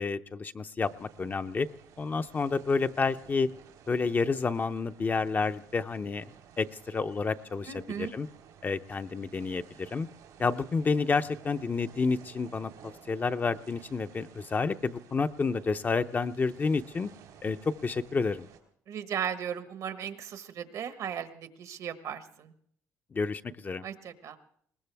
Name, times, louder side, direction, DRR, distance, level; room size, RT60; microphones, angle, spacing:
voice 1, 0.0-1.7 2.0-3.5 3.9-6.2 6.6-8.3 8.6-10.1 10.4-17.1 17.4-18.5 23.1-23.8, left 4 dB, 30° left, 9 dB, 0.6 m, -30 dB
sound 1, 0.8-18.6, right 8 dB, 90° right, 3.3 m, -54 dB
voice 2, 7.7-8.1 18.9-22.5 23.8-24.4, right 8 dB, 65° right, 10 dB, 1.3 m, -36 dB
21.5 x 19.5 x 3.5 m, 0.64 s
cardioid pair, 100°, 6 cm